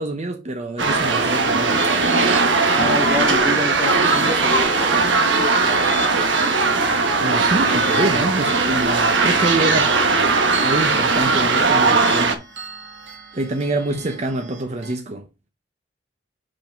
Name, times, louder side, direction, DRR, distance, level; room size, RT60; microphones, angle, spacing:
voice 1, 0.0-1.8 7.2-10.0 10.6-12.5 13.3-15.3, right 2 dB, 40° right, 0.7 m, -26 dB
sound 1, 0.8-14.9, right 2 dB, 75° right, 2.3 m, -36 dB
sound 2, 0.8-12.4, right 3 dB, 90° right, 1.1 m, -18 dB
voice 2, 2.7-5.0, left 1 dB, 10° right, 1.1 m, -27 dB
5.4 x 5.1 x 4.4 m
head